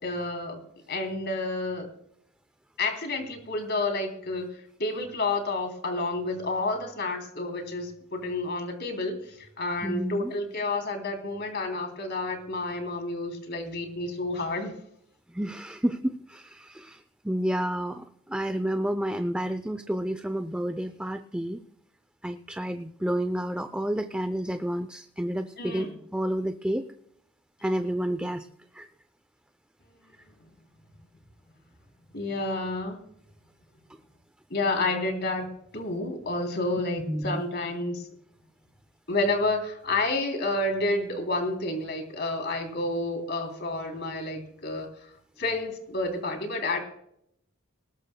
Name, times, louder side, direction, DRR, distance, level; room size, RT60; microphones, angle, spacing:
voice 1, 0.0-1.9 2.8-14.7 25.6-26.0 32.1-33.0 34.5-38.1 39.1-45.1 45.4-46.8, left 2 dB, 50° left, 4 dB, 3.4 m, -30 dB
voice 2, 9.8-10.3 15.3-21.6 22.2-25.9 26.1-26.9 27.6-28.5 28.7-28.9 37.1-37.4, right 1 dB, 5° right, 9 dB, 0.5 m, -30 dB
19.5 x 19.5 x 2.3 m, 0.72 s
head